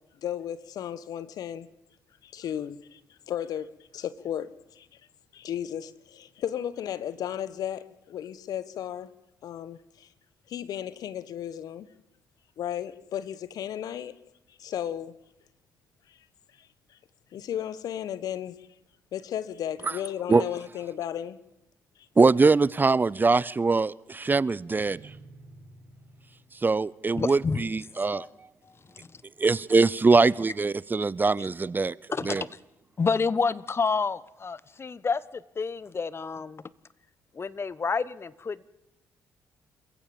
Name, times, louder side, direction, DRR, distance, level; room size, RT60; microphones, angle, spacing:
voice 1, 0.2-1.7 2.2-3.0 3.3-4.5 4.8-4.9 5.3-9.1 9.4-10.1 10.5-11.9 12.6-14.2 14.6-15.1 17.3-18.5 19.1-21.4, left 10 dB, 65° left, 1.3 m, -34 dB
voice 2, 22.2-25.0 26.6-28.2 29.4-31.9 32.2-32.4, right 4 dB, 30° right, 0.7 m, -22 dB
sound 1, 24.8-26.8, right 3 dB, 75° right, 6.9 m, -51 dB
voice 3, 27.2-27.6 28.1-28.3 28.9-29.2 32.1-32.5 33.0-36.7 37.3-38.6, left 5 dB, 35° left, 1.3 m, -29 dB
28.0 x 15.5 x 7.1 m
hypercardioid pair, 55°, 7 cm